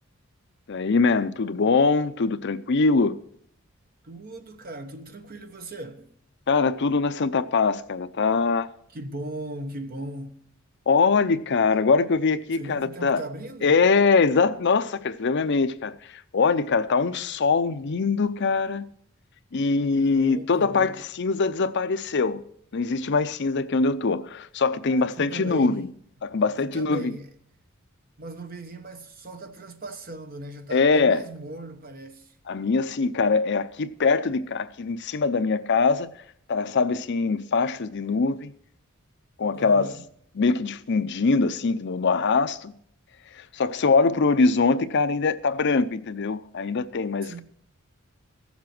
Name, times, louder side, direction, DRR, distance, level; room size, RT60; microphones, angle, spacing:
voice 1, 0.7-3.2 6.5-8.7 10.9-13.2 13.6-18.8 19.5-22.4 22.7-25.9 26.2-27.1 30.7-31.2 32.5-36.1 36.5-38.5 39.4-39.9 40.4-42.7 43.3-47.4, left 4 dB, 55° left, 0.6 m, -23 dB
voice 2, 4.0-6.1 8.9-10.4 12.6-13.8 19.9-21.0 24.9-25.9 26.2-27.3 28.2-32.3 39.5-40.0 47.2-47.4, right 2 dB, 45° right, 1.1 m, -38 dB
15.5 x 7.3 x 6.0 m
head